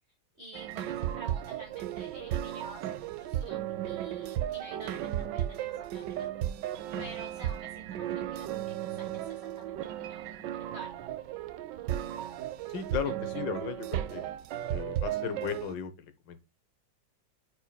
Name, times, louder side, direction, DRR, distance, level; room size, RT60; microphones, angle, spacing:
voice 1, 0.4-6.6 7.0-10.9 13.0-13.1, right 2 dB, 35° right, 1.6 m, -50 dB
sound 1, 0.5-15.7, right 12 dB, 75° right, 1.2 m, -35 dB
voice 2, 12.7-14.2 14.7-16.4, left 8 dB, 70° left, 1.6 m, -36 dB
8.3 x 5.0 x 2.3 m
omnidirectional pair, 2.1 m